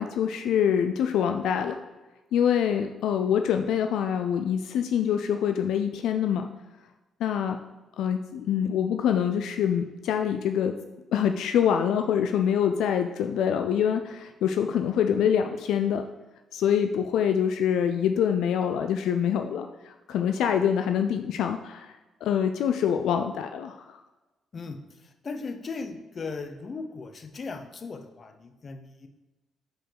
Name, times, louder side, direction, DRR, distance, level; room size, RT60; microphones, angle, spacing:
voice 1, 0.0-1.8 2.3-6.5 7.2-7.6 8.0-10.7 11.1-16.1 16.5-24.0, left 8 dB, 80° left, 6 dB, 0.4 m, -25 dB
voice 2, 24.5-29.1, left 4 dB, 40° left, 7 dB, 0.7 m, -38 dB
5.2 x 4.6 x 5.8 m, 1.1 s
cardioid pair, 90°, 0 cm